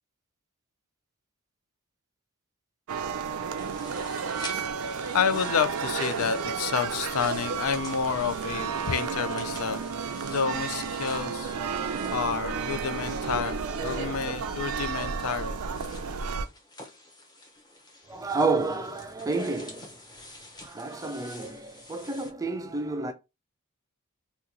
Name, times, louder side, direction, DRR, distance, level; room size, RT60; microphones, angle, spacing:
sound 1, 2.9-16.4, right 5 dB, 85° right, 0.5 m, -32 dB
sound 2, 3.6-22.3, left 2 dB, 20° left, 0.8 m, -48 dB
voice 1, 5.1-9.8 10.2-15.6, left 7 dB, 75° left, 0.4 m, -30 dB
voice 2, 11.7-12.4 13.4-14.6 18.1-20.0 20.6-23.1, right 3 dB, 15° right, 0.3 m, -31 dB
2.8 x 2.3 x 3.7 m
head